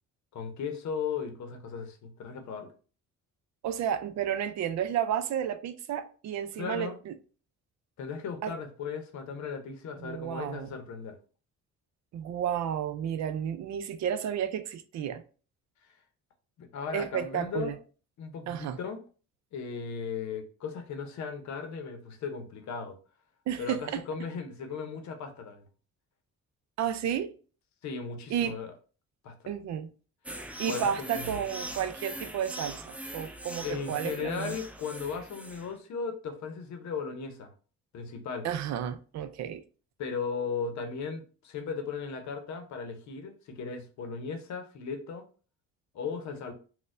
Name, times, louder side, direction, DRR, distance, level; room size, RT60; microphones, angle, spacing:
voice 1, 0.3-2.7 6.6-7.0 8.0-11.2 16.6-17.8 18.2-19.0 19.5-23.0 23.6-25.7 27.8-28.7 29.2-29.4 30.7-31.3 33.6-37.5 37.9-38.5 40.0-45.2 45.9-46.5, left 5 dB, 65° left, 0.7 m, -36 dB
voice 2, 3.6-7.1 8.4-8.5 10.0-10.7 12.1-15.2 16.9-17.8 18.5-18.8 23.5-24.0 26.8-27.3 28.3-28.6 29.5-29.9 30.6-34.5 38.4-39.6, right 9 dB, 65° right, 0.5 m, -32 dB
sound 1, 30.3-35.7, right 1 dB, 5° right, 0.4 m, -41 dB
4.1 x 2.2 x 2.5 m
cardioid pair, 90°, 30 cm